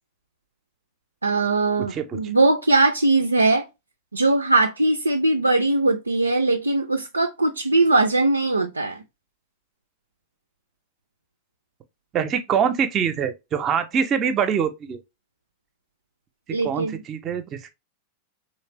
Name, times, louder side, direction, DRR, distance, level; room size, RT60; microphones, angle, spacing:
voice 1, 1.2-3.7 4.1-9.0 16.5-17.0, right 2 dB, 80° right, 0.3 m, -20 dB
voice 2, 1.8-2.2 12.1-15.0 16.5-17.7, right 7 dB, 30° right, 0.6 m, -24 dB
3.2 x 3.1 x 3.0 m
figure-of-eight pair, 90°, 0 cm